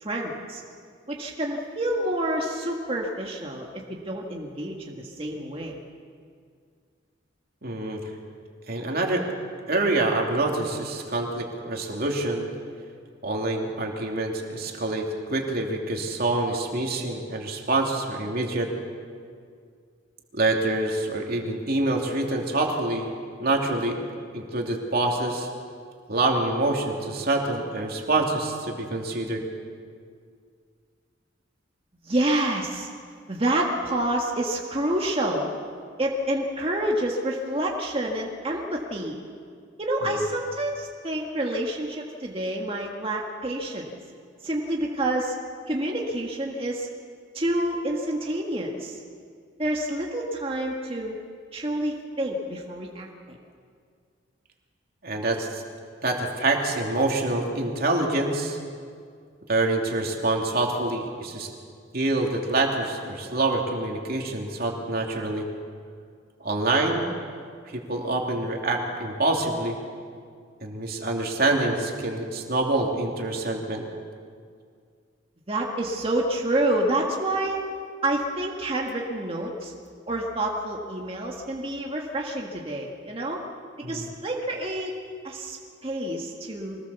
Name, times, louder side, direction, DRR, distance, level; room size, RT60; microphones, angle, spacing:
voice 1, 0.0-0.6 1.1-5.8 32.0-32.9 33.3-35.5 36.0-39.2 39.8-43.9 44.4-45.4 45.7-46.9 47.3-49.0 49.6-51.2 51.5-53.4 75.5-77.6 78.0-79.7 80.1-83.4 83.9-84.9 85.2-85.6 85.8-86.8, right 1 dB, 30° right, -1 dB, 1.8 m, -28 dB
voice 2, 7.6-8.0 8.7-9.2 9.7-12.5 13.2-18.7 20.3-23.1 23.4-24.0 24.3-25.5 26.1-29.4 40.0-40.2 55.0-55.6 56.0-58.6 59.5-61.5 61.9-65.4 66.4-67.1 67.7-69.7 70.6-73.8 83.8-84.1, right 2 dB, 50° right, 1 dB, 2.9 m, -26 dB
24.5 x 19.0 x 7.1 m, 2.2 s
head